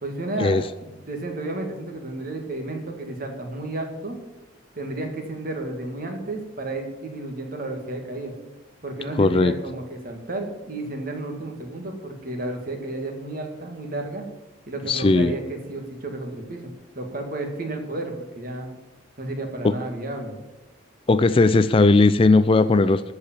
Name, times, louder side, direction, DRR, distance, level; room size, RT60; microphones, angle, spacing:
voice 1, 0.0-4.2 4.7-8.3 8.8-14.2 14.7-18.7 19.2-20.3, right 2 dB, 45° right, 3 dB, 2.1 m, -32 dB
voice 2, 9.2-9.5 14.9-15.3 21.1-23.1, left 3 dB, 25° left, 13 dB, 0.3 m, -17 dB
13.5 x 4.9 x 8.9 m, 0.99 s
head